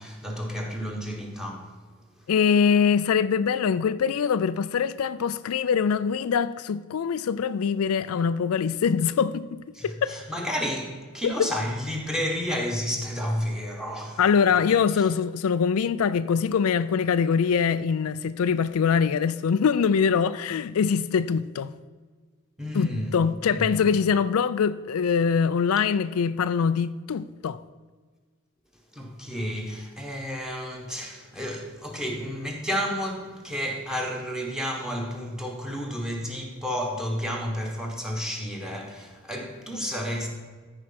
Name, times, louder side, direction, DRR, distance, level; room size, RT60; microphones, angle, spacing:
voice 1, 0.0-1.7 9.7-14.2 14.5-15.0 22.6-23.1 23.5-23.7 28.9-40.3, equal, 5° right, 1.5 m, -31 dB
voice 2, 2.3-9.6 10.0-10.2 11.2-11.3 14.2-21.7 22.7-27.6, left 6 dB, 80° left, 0.4 m, -23 dB
13.5 x 4.9 x 5.9 m
head